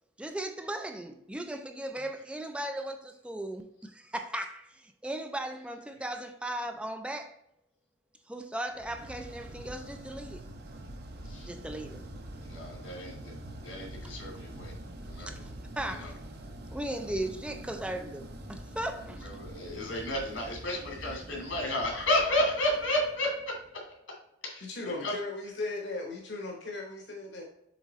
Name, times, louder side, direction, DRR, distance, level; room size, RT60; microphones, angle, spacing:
voice 1, 0.2-7.3 8.3-10.4 11.5-12.0 14.0-14.2 15.3-15.5 15.8-16.2 16.7-19.3, right 1 dB, 5° right, 0.3 m, -37 dB
sound 1, 8.7-23.8, right 1 dB, 55° right, 0.8 m, -45 dB
voice 2, 12.5-13.3 13.6-14.7 15.0-15.4 15.9-16.1 19.2-23.3 24.4-25.1, left 1 dB, 85° left, 2.6 m, -32 dB
voice 3, 24.6-27.4, left 2 dB, 60° left, 1.1 m, -37 dB
7.4 x 3.6 x 4.0 m
head